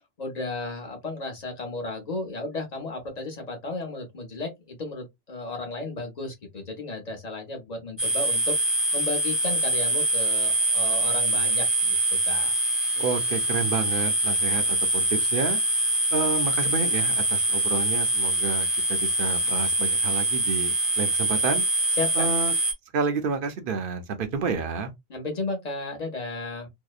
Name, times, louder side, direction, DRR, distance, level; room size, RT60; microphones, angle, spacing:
voice 1, 0.2-8.6 8.9-12.0 12.2-12.5 22.0-22.3 25.1-26.7, left 2 dB, 40° left, 0.9 m, -34 dB
sound 1, 8.0-22.7, right 1 dB, ahead, 0.4 m, -24 dB
voice 2, 13.0-15.6 16.1-21.6 22.2-22.5 22.9-24.9, right 5 dB, 60° right, 0.7 m, -30 dB
2.7 x 2.0 x 2.3 m
omnidirectional pair, 1.1 m